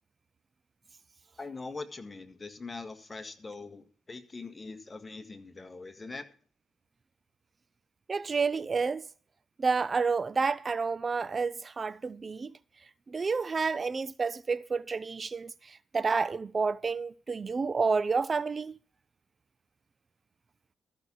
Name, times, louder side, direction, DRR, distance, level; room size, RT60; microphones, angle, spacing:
voice 1, 1.4-6.3, left 3 dB, 30° left, 1.8 m, -42 dB
voice 2, 8.1-9.1 9.6-12.5 13.1-18.8, right 4 dB, 40° right, 0.5 m, -30 dB
14.0 x 6.2 x 7.1 m
supercardioid pair, 65°, 0 cm